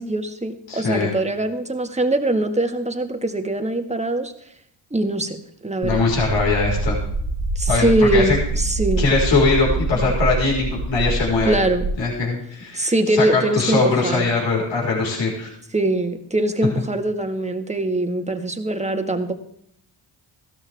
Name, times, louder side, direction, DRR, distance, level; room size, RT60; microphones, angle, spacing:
voice 1, 0.0-4.3 4.9-5.4 5.6-6.0 7.6-9.1 9.9-10.1 11.5-11.8 12.8-14.3 15.7-19.3, right 1 dB, 15° right, 6 dB, 1.9 m, -22 dB
voice 2, 0.7-1.1 5.8-7.0 7.7-8.4 9.0-11.6 12.0-15.5, left 3 dB, 65° left, -4 dB, 5.1 m, -21 dB
sound 1, 5.8-12.0, right 3 dB, 70° right, 1.7 m, -25 dB
15.0 x 13.0 x 3.6 m, 0.70 s
supercardioid pair, 55°, 49 cm